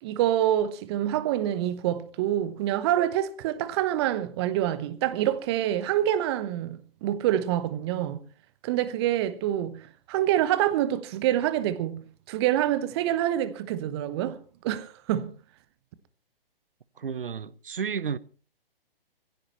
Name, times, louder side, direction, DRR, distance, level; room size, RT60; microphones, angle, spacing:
voice 1, 0.0-8.2 8.6-14.4 14.6-15.3, right 12 dB, 25° right, 1.1 m, -26 dB
voice 2, 17.0-18.2, right 6 dB, 65° right, 0.9 m, -32 dB
22.5 x 16.0 x 3.0 m
figure-of-eight pair, 125°, 29 cm